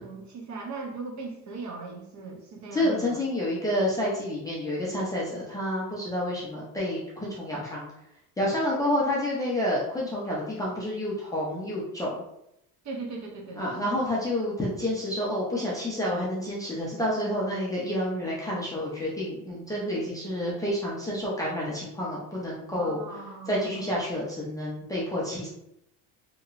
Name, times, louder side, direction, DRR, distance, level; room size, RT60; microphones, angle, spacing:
voice 1, 0.0-3.2 12.8-14.2 22.7-23.9, right 3 dB, 45° right, 0 dB, 0.7 m, -39 dB
voice 2, 2.7-7.9 8.4-12.2 13.6-23.0 23.5-25.5, left 1 dB, 10° left, -7 dB, 0.4 m, -29 dB
2.9 x 2.8 x 2.4 m, 0.80 s
cardioid pair, 150°, 41 cm